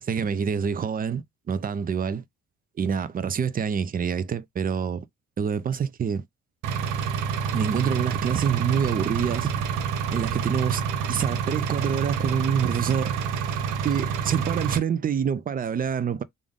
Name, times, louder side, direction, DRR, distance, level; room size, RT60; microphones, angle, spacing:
voice 1, 0.0-2.2 2.8-5.1 5.4-6.2 7.5-9.5 10.1-10.8 11.1-13.2 13.8-16.2, right 7 dB, 30° right, 0.4 m, -26 dB
Engine, 6.6-14.8, right 7 dB, 85° right, 0.7 m, -28 dB
3.4 x 2.6 x 3.6 m
cardioid pair, 90°, 30 cm